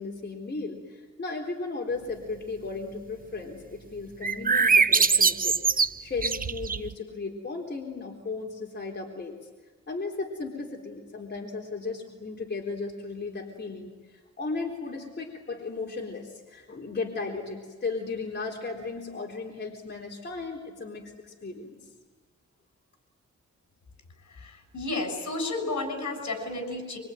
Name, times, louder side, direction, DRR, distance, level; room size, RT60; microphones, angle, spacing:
voice 1, 0.0-5.6 6.0-9.3 9.9-21.9, left 3 dB, 35° left, -1 dB, 3.9 m, -35 dB
sound 1, 4.2-6.9, right 5 dB, 30° right, 0.7 m, -22 dB
voice 2, 24.3-27.0, left 2 dB, 65° left, 5 dB, 6.8 m, -32 dB
25.0 x 24.5 x 9.2 m, 1.4 s
cardioid pair, 95°, 30 cm